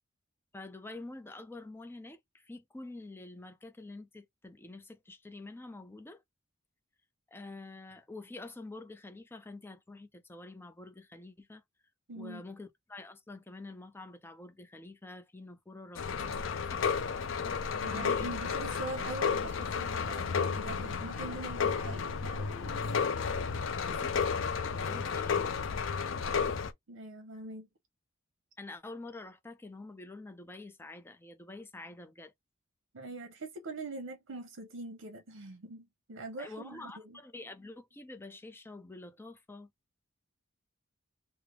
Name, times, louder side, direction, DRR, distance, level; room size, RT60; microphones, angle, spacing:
voice 1, 0.5-6.2 7.3-11.6 12.2-16.8 17.9-18.3 23.7-25.6 28.6-32.3 36.4-39.7, left 2 dB, 10° left, 0.5 m, -47 dB
voice 2, 12.1-12.4 17.8-22.9 23.5-23.9 26.9-27.7 32.9-37.2, right 2 dB, 85° right, 0.7 m, -43 dB
sound 1, 16.0-26.7, left 6 dB, 70° left, 0.5 m, -32 dB
3.2 x 2.1 x 3.5 m
head